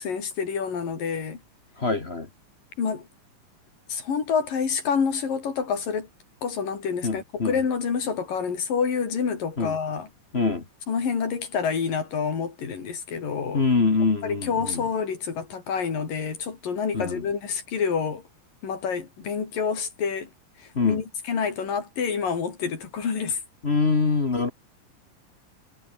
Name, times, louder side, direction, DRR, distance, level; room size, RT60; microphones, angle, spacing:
voice 1, 0.0-1.4 2.8-3.1 3.9-6.1 6.4-10.1 10.9-13.6 14.2-18.2 18.6-20.3 20.8-23.4, left 6 dB, 90° left, 5.9 m, -28 dB
voice 2, 1.8-2.3 7.0-7.6 9.6-9.7 10.3-10.6 13.5-14.9 16.9-17.2 20.7-21.0 23.6-24.5, left 4 dB, 35° left, 1.0 m, -24 dB
omnidirectional pair, 3.8 m